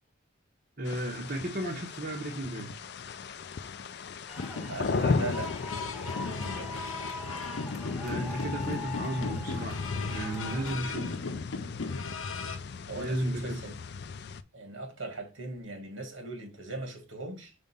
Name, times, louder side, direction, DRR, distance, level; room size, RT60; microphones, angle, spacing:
voice 1, 0.8-2.8 8.0-11.1 12.9-13.6, right 1 dB, 50° right, 1.1 m, -34 dB
sound 1, 0.9-14.4, left 4 dB, 55° left, 0.4 m, -36 dB
sound 2, 4.3-10.7, left 3 dB, ahead, 1.3 m, -42 dB
sound 3, 4.4-12.6, left 4 dB, 90° left, 0.8 m, -38 dB
voice 2, 4.7-5.5 5.9-6.7 12.9-13.7 14.5-17.5, right 2 dB, 80° right, 1.9 m, -39 dB
5.4 x 3.6 x 5.4 m
head